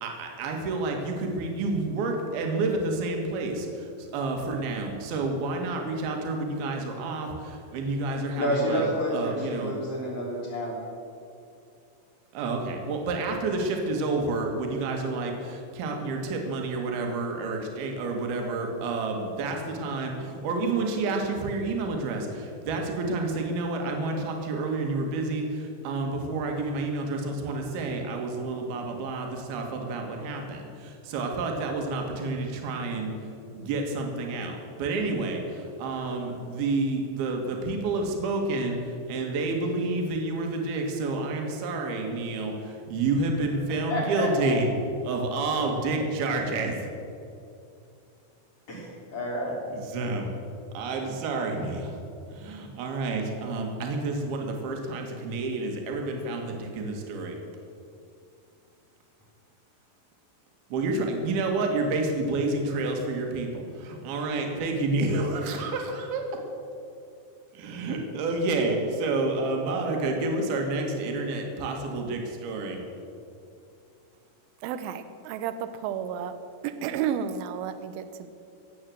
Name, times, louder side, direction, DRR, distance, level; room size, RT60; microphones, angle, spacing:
voice 1, 0.0-3.7 4.1-8.9 9.1-9.7 12.3-33.1 33.5-38.8 39.1-44.7 45.0-46.8 49.7-50.3 50.7-51.9 52.3-57.4 60.7-66.2 67.6-72.8, right 3 dB, 65° right, 2 dB, 3.4 m, -29 dB
voice 2, 8.3-10.8 43.9-44.6 48.7-49.6, equal, 35° left, -5 dB, 4.0 m, -29 dB
voice 3, 74.6-76.4 76.6-78.3, right 8 dB, 80° right, 10 dB, 2.2 m, -32 dB
16.5 x 8.6 x 7.7 m, 2.6 s
omnidirectional pair, 5.2 m